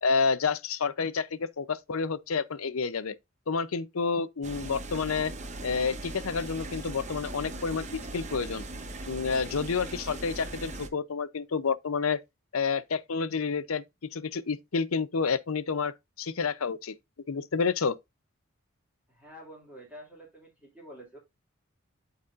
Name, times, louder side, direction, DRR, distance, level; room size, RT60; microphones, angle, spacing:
voice 1, 0.0-3.2 3.5-5.3 5.6-7.9 8.1-8.6 9.1-12.2 12.5-13.8 14.1-15.9 16.2-17.0 17.3-18.0, left 5 dB, 80° left, 0.7 m, -29 dB
sound 1, 4.4-10.9, right 2 dB, 35° right, 0.8 m, -39 dB
voice 2, 19.1-21.2, equal, 5° right, 2.4 m, -48 dB
12.5 x 4.1 x 2.5 m
head